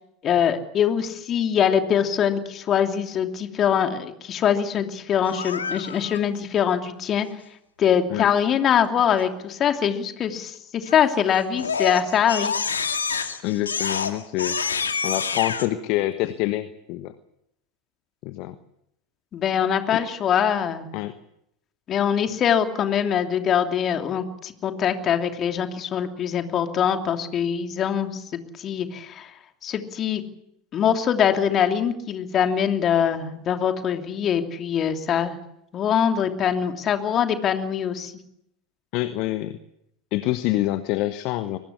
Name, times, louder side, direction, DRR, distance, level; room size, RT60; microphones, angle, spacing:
voice 1, 0.2-7.3 7.8-12.5 19.3-20.9 21.9-29.3 29.6-30.2 30.7-35.4 35.7-38.1, left 8 dB, 35° left, 6 dB, 2.9 m, -23 dB
Crying sobbing, 5.2-6.2 10.9-11.2 11.6-15.7, left 5 dB, 80° left, 2.0 m, -27 dB
voice 2, 13.4-14.6 15.0-17.1 18.2-18.5 19.9-20.0 20.9-21.1 38.9-39.6 40.1-41.6, left 16 dB, 50° left, 12 dB, 1.2 m, -26 dB
23.5 x 19.5 x 8.4 m, 0.79 s
figure-of-eight pair, 85°, 0 cm